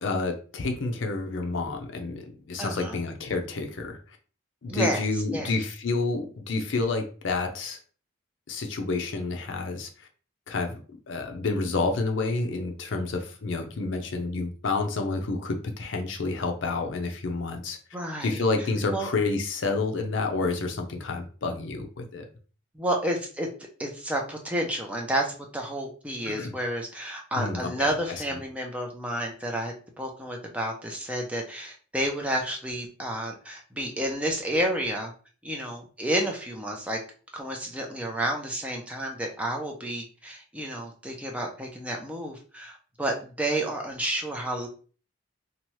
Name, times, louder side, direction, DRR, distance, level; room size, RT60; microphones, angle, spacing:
voice 1, 0.0-4.0 4.6-7.8 8.5-9.9 10.5-10.8 11.1-17.8 18.2-22.2 26.4-26.5 27.4-27.9, left 3 dB, 70° left, 4 dB, 0.5 m, -29 dB
voice 2, 2.6-3.0 4.7-5.0 5.3-5.6 17.9-18.4 18.9-19.1 22.7-23.5 23.8-25.3 25.5-35.1 35.4-37.0 37.3-44.7, right 1 dB, 5° right, 1 dB, 0.4 m, -30 dB
2.8 x 2.3 x 3.0 m, 0.39 s
head